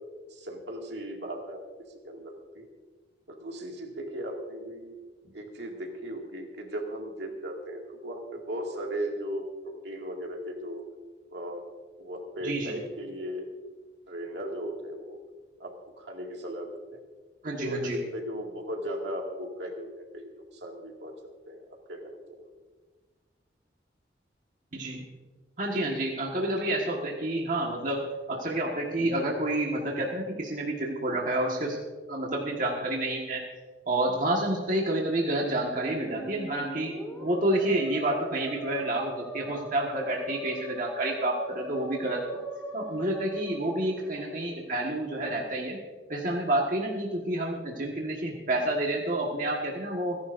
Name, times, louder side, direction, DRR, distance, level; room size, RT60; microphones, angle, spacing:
voice 1, 0.3-1.6 2.0-2.7 3.3-5.0 5.3-10.8 11.3-13.5 14.1-15.2 15.6-17.0 17.6-21.6 21.9-22.5 37.5-37.7 44.0-44.1, equal, 70° right, 1 dB, 2.2 m, -37 dB
voice 2, 17.4-18.0 24.7-25.0 25.6-31.8 32.1-33.4 33.9-36.9 37.2-42.2 42.7-45.8 46.1-50.2, right 1 dB, 45° right, -1 dB, 1.6 m, -29 dB
Musical instrument, 35.6-44.4, right 1 dB, 10° left, 3.2 m, -40 dB
28.5 x 11.0 x 2.6 m, 1.4 s
head